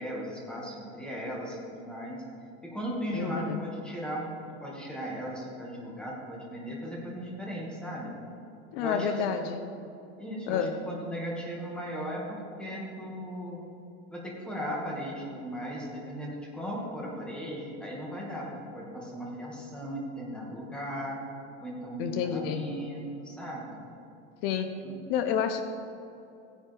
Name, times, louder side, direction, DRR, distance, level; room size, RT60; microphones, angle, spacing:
voice 1, 0.0-2.2 2.6-4.3 4.6-8.1 8.8-9.3 10.2-13.6 14.1-21.2 21.6-23.8 24.8-24.9, equal, 5° left, -4 dB, 1.9 m, -37 dB
voice 2, 3.1-3.6 8.7-9.7 10.5-10.7 22.0-22.7 24.4-24.8 25.1-25.6, left 7 dB, 65° left, 8 dB, 0.8 m, -29 dB
16.0 x 10.0 x 3.5 m, 2.7 s
supercardioid pair, 165°, 32 cm